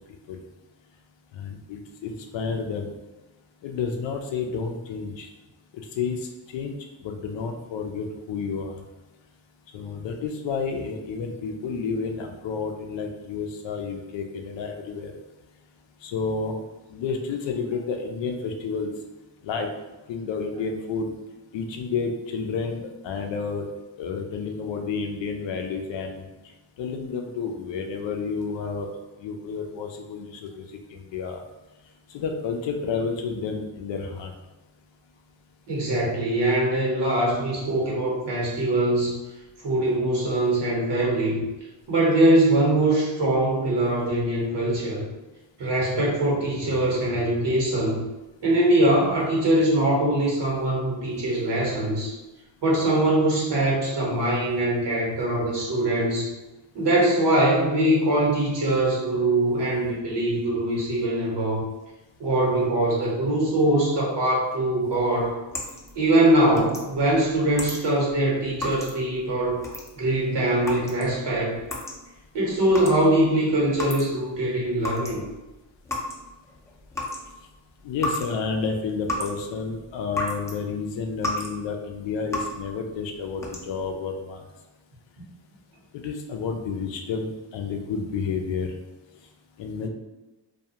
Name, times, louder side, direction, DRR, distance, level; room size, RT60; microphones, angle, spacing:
voice 1, 1.3-2.9 3.6-5.3 5.7-6.8 7.0-8.8 9.7-15.1 16.0-16.6 16.9-18.9 19.4-19.7 20.1-21.1 21.5-23.7 24.0-26.3 26.8-28.9 29.2-30.6 30.9-31.4 32.1-34.3 77.8-84.4 85.9-88.7 89.6-89.9, left 5 dB, 60° left, 4 dB, 0.5 m, -30 dB
voice 2, 35.7-39.2 39.6-41.4 41.9-45.0 45.6-48.0 48.4-52.1 52.6-56.3 56.7-61.6 62.2-65.3 65.9-69.6 70.0-71.6 72.3-75.2, right 1 dB, 55° right, -4 dB, 1.1 m, -22 dB
sound 1, 64.9-74.4 74.6-80.6 80.9-81.6 81.9-82.7 83.2-83.9, left 1 dB, 5° left, 0.6 m, -34 dB
2.3 x 2.3 x 2.8 m, 1.1 s
supercardioid pair, 55°, 50 cm